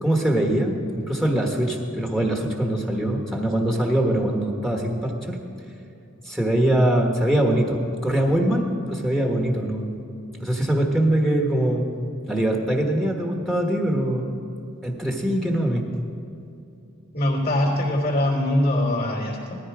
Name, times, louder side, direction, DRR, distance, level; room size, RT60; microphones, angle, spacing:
voice 1, 0.0-0.8 1.1-5.4 6.2-10.0 10.4-11.8 12.3-14.2 14.8-15.8, right 1 dB, ahead, 1 dB, 1.4 m, -22 dB
voice 2, 17.1-19.6, left 1 dB, 45° left, -5 dB, 3.2 m, -22 dB
18.5 x 14.0 x 4.9 m, 2.8 s
head